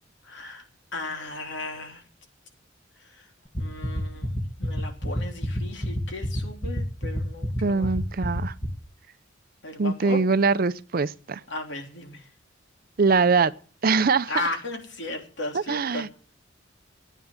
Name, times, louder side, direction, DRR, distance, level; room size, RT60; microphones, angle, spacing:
voice 1, 0.2-0.6 0.9-2.0 3.0-3.2 3.6-7.9 9.6-10.2 11.5-12.2 14.3-16.1, left 2 dB, 65° left, 3.3 m, -35 dB
sound 1, 3.5-8.7, equal, 15° left, 1.7 m, -28 dB
voice 2, 7.6-8.5 9.8-11.4 13.0-13.5 13.8-14.4 15.5-16.1, right 4 dB, 50° right, 0.6 m, -22 dB
14.0 x 9.3 x 7.3 m
head